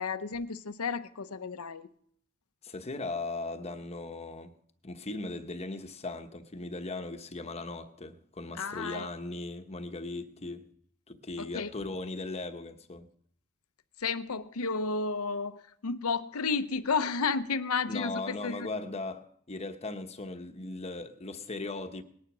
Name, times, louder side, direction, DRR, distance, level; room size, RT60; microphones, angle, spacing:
voice 1, 0.0-1.9 8.6-9.1 11.4-11.7 14.0-18.7, left 4 dB, 85° left, 0.8 m, -32 dB
voice 2, 2.6-4.5 4.8-10.6 11.1-13.1 17.9-22.0, left 2 dB, 30° left, 1.0 m, -38 dB
19.5 x 10.5 x 6.1 m
head